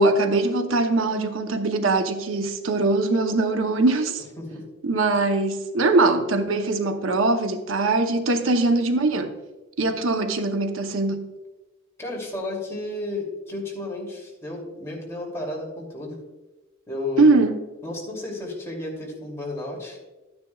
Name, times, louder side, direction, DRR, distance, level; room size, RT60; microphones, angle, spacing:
voice 1, 0.0-4.2 4.8-9.3 9.8-11.3 17.2-17.6, right 2 dB, 90° right, 0.8 m, -21 dB
voice 2, 12.0-16.1 16.9-17.3 17.8-20.1, left 2 dB, 15° left, 2.7 m, -32 dB
12.5 x 9.6 x 2.3 m
head